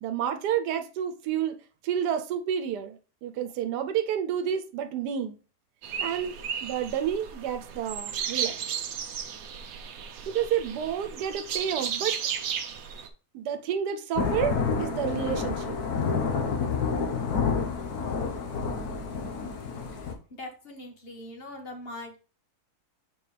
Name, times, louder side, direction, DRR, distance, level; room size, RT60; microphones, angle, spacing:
voice 1, 0.0-1.6 1.8-5.4 6.0-6.3 6.6-8.6 10.3-12.2 13.3-15.8, right 9 dB, 90° right, 1.2 m, -30 dB
sound 1, 5.8-13.1, right 8 dB, 65° right, 1.1 m, -34 dB
Thunder / Rain, 14.2-20.1, left 5 dB, 70° left, 1.5 m, -29 dB
voice 2, 20.3-22.2, left 1 dB, 40° left, 1.4 m, -41 dB
7.0 x 4.5 x 3.3 m
omnidirectional pair, 1.7 m